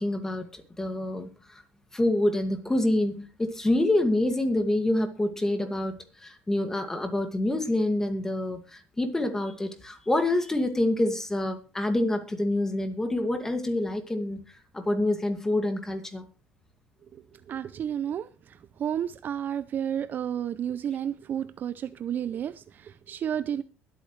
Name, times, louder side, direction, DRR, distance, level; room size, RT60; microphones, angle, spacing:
voice 1, 0.0-1.6 1.9-14.4 14.7-16.3, left 1 dB, 10° left, 7 dB, 2.1 m, -27 dB
voice 2, 17.1-23.6, right 9 dB, 40° right, 15 dB, 0.5 m, -32 dB
22.0 x 8.7 x 3.2 m, 0.35 s
cardioid pair, 130°, 5 cm